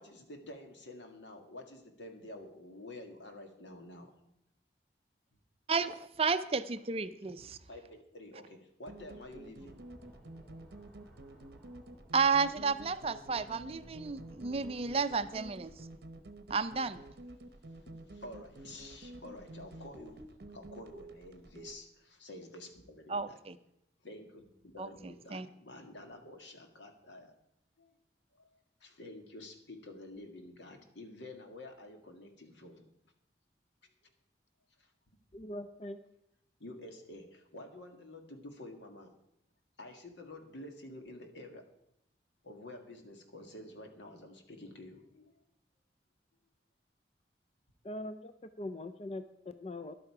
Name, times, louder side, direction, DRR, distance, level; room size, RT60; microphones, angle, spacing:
voice 1, 0.0-4.2 7.5-9.8 17.8-20.2 20.5-23.4 24.0-27.3 27.8-27.9 28.4-32.8 34.8-34.9 36.6-39.1 39.8-41.7 42.4-45.4, left 1 dB, 90° left, 2.0 m, -49 dB
voice 2, 5.7-7.6 12.1-15.7 16.5-17.0 23.1-23.6 24.8-25.5, right 5 dB, 35° right, 0.5 m, -32 dB
sound 1, 8.9-21.8, right 2 dB, 60° right, 0.8 m, -50 dB
sound 2, 9.6-15.9, equal, 5° left, 3.4 m, -59 dB
voice 3, 35.3-36.0 47.8-48.3 48.6-49.9, left 1 dB, 35° left, 0.5 m, -41 dB
13.0 x 11.0 x 4.8 m
head